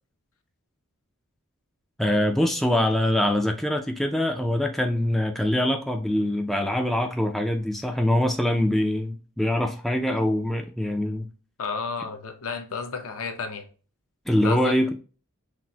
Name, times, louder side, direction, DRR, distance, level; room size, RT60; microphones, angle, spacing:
voice 1, 2.0-11.3 14.3-14.9, left 1 dB, ahead, 0.3 m, -24 dB
voice 2, 11.6-13.7 14.4-14.8, left 5 dB, 70° left, 0.7 m, -31 dB
5.8 x 2.0 x 2.8 m
head